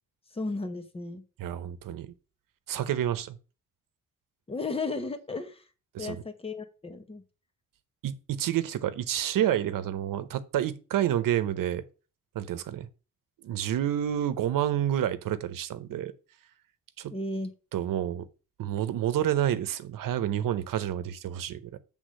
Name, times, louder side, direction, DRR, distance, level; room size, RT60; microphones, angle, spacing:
voice 1, 0.3-1.2 4.5-5.6 6.0-7.2 17.1-17.5, left 3 dB, 15° left, 1.0 m, -34 dB
voice 2, 1.4-2.1 2.7-3.4 5.9-6.2 8.0-11.8 12.3-12.9 13.4-16.1 17.0-17.1 17.7-18.3 18.6-21.8, right 11 dB, 90° right, 0.8 m, -29 dB
8.2 x 3.6 x 6.3 m
wide cardioid pair, 155°, 32 cm